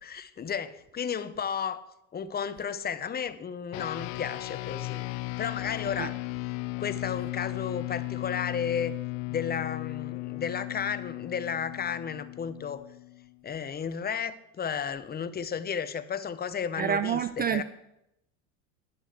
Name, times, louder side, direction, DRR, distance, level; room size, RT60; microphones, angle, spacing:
voice 1, 0.0-5.1 5.4-6.1 6.8-9.0 9.3-12.8 13.4-17.2 17.5-17.6, left 7 dB, 25° left, 0.7 m, -33 dB
sound 1, 3.7-13.4, left 23 dB, 80° left, 0.6 m, -36 dB
voice 2, 16.8-17.6, right 9 dB, 25° right, 0.3 m, -28 dB
10.5 x 6.2 x 8.0 m
supercardioid pair, 100°, 38 cm